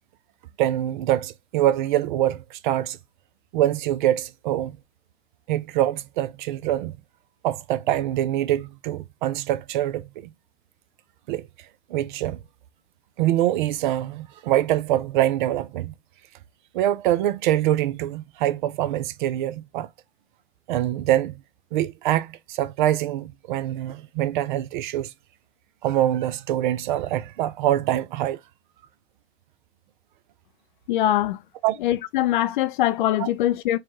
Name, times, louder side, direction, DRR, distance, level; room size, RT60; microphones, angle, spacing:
voice 1, 0.6-3.0 3.5-4.8 5.5-6.9 7.4-10.3 11.3-11.5 11.9-12.4 13.2-15.9 16.7-19.9 20.7-21.4 21.7-25.1 25.8-28.4 31.6-31.8 33.2-33.3, right 13 dB, 50° right, 0.5 m, -24 dB
voice 2, 30.9-31.4 31.8-33.8, left 13 dB, 50° left, 0.4 m, -22 dB
4.6 x 2.2 x 2.9 m
hypercardioid pair, 110°, 33 cm